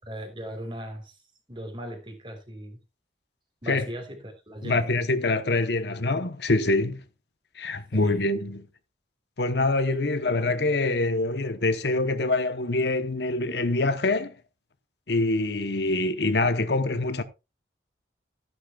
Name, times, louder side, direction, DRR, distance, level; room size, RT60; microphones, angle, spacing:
voice 1, 0.1-1.2 1.5-2.8 3.6-4.9 7.6-8.2, equal, 25° right, 3.6 m, -38 dB
voice 2, 4.6-7.0 7.5-8.7 9.4-14.4 15.1-17.2, left 2 dB, 70° left, 1.0 m, -25 dB
14.0 x 11.0 x 2.4 m
head